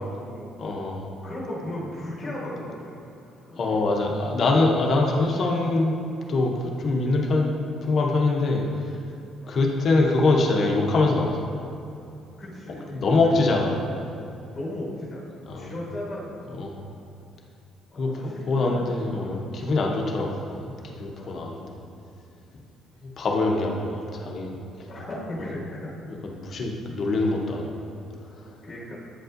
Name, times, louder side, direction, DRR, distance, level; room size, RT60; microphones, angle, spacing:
voice 1, 0.0-0.5 1.2-3.0 3.5-3.8 9.4-9.6 12.4-13.4 14.5-16.4 17.9-18.8 19.1-19.7 21.2-21.7 24.9-25.9 28.6-29.0, left 1 dB, 15° left, -5 dB, 1.3 m, -36 dB
voice 2, 0.6-1.1 3.6-5.9 6.3-6.5 6.8-7.5 7.8-8.6 9.5-11.4 12.9-13.9 15.5-15.7 16.6-16.8 18.0-20.7 21.0-21.7 23.2-24.6 25.4-25.5 26.2-27.9 28.4-28.5, left 2 dB, 35° left, 0 dB, 0.7 m, -24 dB
8.3 x 5.2 x 2.6 m, 2.6 s
cardioid pair, 175°, 0 cm